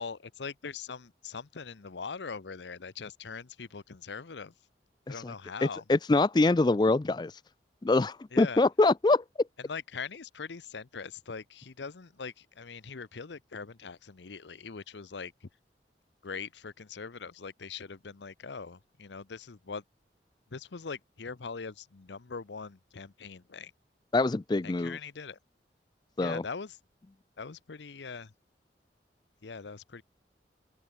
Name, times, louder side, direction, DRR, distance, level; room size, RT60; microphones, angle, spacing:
voice 1, 0.0-4.5 5.1-5.8 8.3-8.6 9.6-15.5 16.2-19.8 20.5-23.7 24.6-25.4 26.2-26.8 27.4-28.3 29.4-30.0, left 5 dB, 85° left, 0.8 m, -41 dB
voice 2, 5.9-7.3 7.8-9.2 24.1-25.0 26.2-26.4, left 2 dB, 25° left, 0.4 m, -24 dB
open air
head